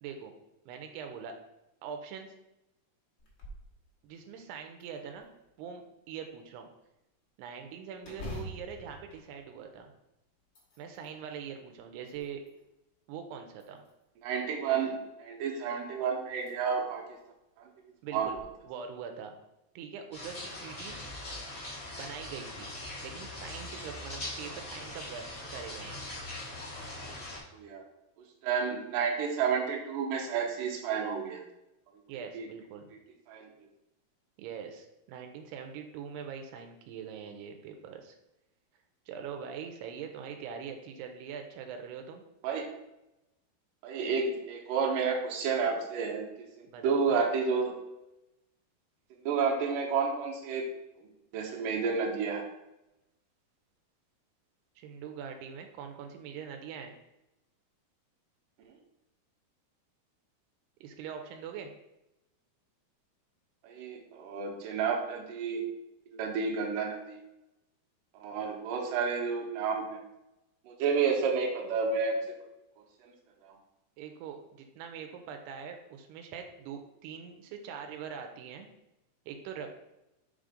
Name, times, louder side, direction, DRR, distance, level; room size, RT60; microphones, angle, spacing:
voice 1, 0.0-0.3 0.7-1.3 1.8-2.3 4.0-5.3 5.6-6.7 7.4-9.9 10.8-12.4 13.1-13.8 18.0-18.4 18.7-19.3 19.8-21.0 21.9-22.7 23.0-26.0 32.1-32.9 34.4-38.2 39.1-42.2 46.7-47.2 54.8-57.0 60.8-61.7 74.0-78.7 79.3-79.7, right 7 dB, 85° right, 5 dB, 2.7 m, -43 dB
sound 1, 3.2-3.7 4.2-4.3 4.8-5.6 8.0-10.0 10.4-11.1 11.8-12.6 13.5-14.2 15.7-15.8 16.3-16.5 17.0-17.1 18.1-18.4, left 1 dB, 65° left, 1.0 m, -46 dB
voice 2, 14.2-17.0 17.6-17.7 18.1-18.3 27.0-27.2 27.5-27.8 28.4-31.4 32.3-32.5 33.3-33.5 42.4-42.6 43.8-46.3 46.6-47.7 49.2-50.7 51.3-52.4 63.6-65.6 66.1-67.2 68.2-70.0 70.7-72.4 73.4-73.5, right 5 dB, 70° right, 0 dB, 2.2 m, -30 dB
sound 2, 20.1-27.4, left 2 dB, 80° left, 0.6 m, -41 dB
6.0 x 3.8 x 4.9 m, 0.91 s
omnidirectional pair, 4.7 m